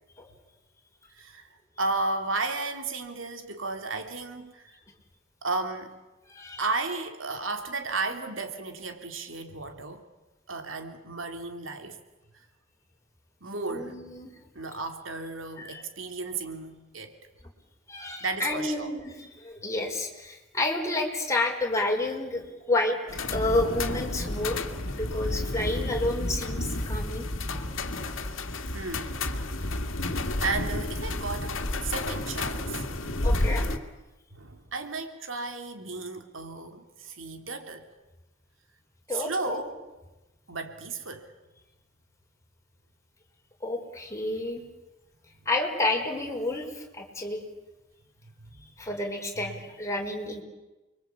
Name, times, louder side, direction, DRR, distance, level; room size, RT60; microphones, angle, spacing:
voice 1, 1.1-4.8 5.4-6.0 6.6-10.1 10.5-12.0 13.4-14.0 14.5-17.2 18.2-18.9 28.7-29.2 30.0-33.3 34.3-37.9 39.1-39.8 40.5-41.3 48.4-48.7 49.4-49.6, right 3 dB, 75° right, 6 dB, 3.2 m, -34 dB
voice 2, 6.3-6.6 13.7-14.3 15.6-15.8 17.9-23.0 23.3-24.6 24.9-27.3 33.2-33.7 39.1-39.7 43.6-44.6 45.4-47.4 48.8-50.4, left 2 dB, 15° left, 0 dB, 4.7 m, -30 dB
sound 1, 23.1-33.8, left 1 dB, 85° left, 2.2 m, -31 dB
29.5 x 23.0 x 8.5 m, 1.1 s
head